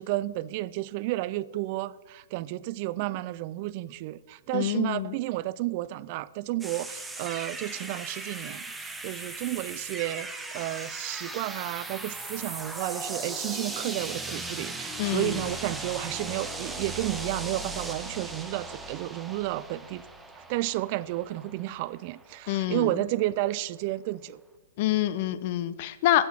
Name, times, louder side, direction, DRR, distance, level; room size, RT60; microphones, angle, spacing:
voice 1, 0.0-20.0 20.4-24.4, right 16 dB, 45° right, 0.3 m, -32 dB
voice 2, 4.5-5.1 15.0-15.3 22.5-22.9 24.8-26.3, left 13 dB, 45° left, 0.5 m, -26 dB
sound 1, 6.6-22.5, right 2 dB, 5° right, 0.8 m, -38 dB
9.3 x 7.8 x 4.2 m
hypercardioid pair, 125°, 0 cm